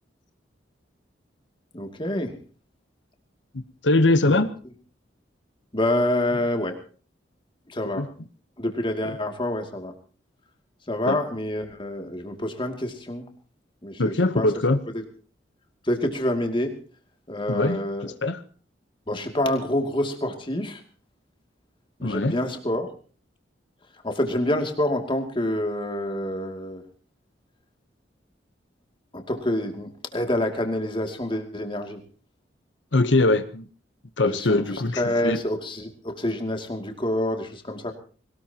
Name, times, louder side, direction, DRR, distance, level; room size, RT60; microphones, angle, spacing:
voice 1, 1.7-2.4 4.1-4.4 5.7-6.8 7.7-8.1 8.6-9.9 10.9-13.3 13.8-14.5 14.9-15.0 15.8-16.8 17.3-18.1 19.1-20.8 22.0-22.9 24.0-26.8 29.1-32.0 34.3-37.9, left 1 dB, 30° left, 4 dB, 2.6 m, -27 dB
voice 2, 3.8-4.5 7.9-8.1 9.0-9.1 11.1-11.2 14.0-14.8 17.5-17.8 18.2-18.4 22.0-22.4 32.9-33.6 34.2-35.4, left 2 dB, 85° left, 10 dB, 1.0 m, -21 dB
22.0 x 19.5 x 3.0 m, 0.39 s
head